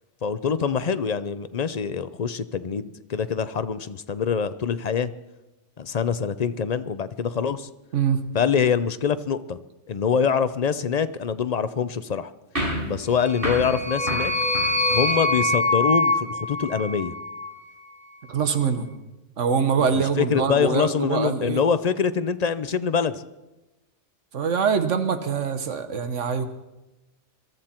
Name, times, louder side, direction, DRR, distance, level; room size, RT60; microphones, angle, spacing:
voice 1, 0.2-5.1 5.8-7.7 8.3-9.6 9.9-12.3 12.9-14.3 14.9-17.1 19.8-23.2, left 6 dB, 45° left, 13 dB, 0.6 m, -24 dB
sound 1, 12.6-15.4, equal, 50° right, 5.5 m, -31 dB
sound 2, 13.2-17.6, left 2 dB, 5° left, 1.6 m, -25 dB
voice 2, 18.3-18.9 19.4-21.6 24.3-26.5, right 6 dB, 90° right, 9 dB, 1.5 m, -24 dB
22.5 x 13.5 x 4.4 m, 1.0 s
omnidirectional pair, 1.2 m